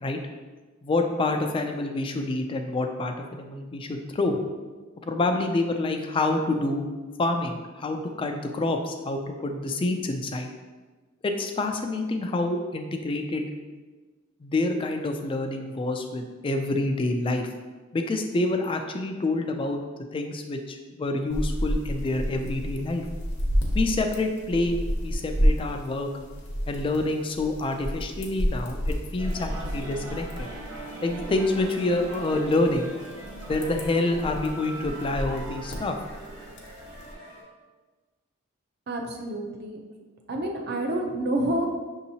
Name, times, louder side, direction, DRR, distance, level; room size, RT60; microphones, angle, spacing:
voice 1, 0.8-4.4 5.1-6.8 7.2-10.5 11.2-13.5 14.4-17.5 17.9-19.8 20.1-23.0 23.7-24.8 25.0-26.1 26.7-30.5 31.0-32.9 33.5-36.0, left 2 dB, 25° left, 5 dB, 0.3 m, -27 dB
sound 1, 21.3-37.1, equal, 55° left, 0.8 m, -31 dB
sound 2, 29.2-37.4, right 1 dB, 80° right, 1.3 m, -41 dB
voice 2, 38.9-39.8 40.3-41.7, right 1 dB, 50° right, 2 dB, 0.5 m, -28 dB
6.1 x 2.8 x 2.7 m, 1.3 s
head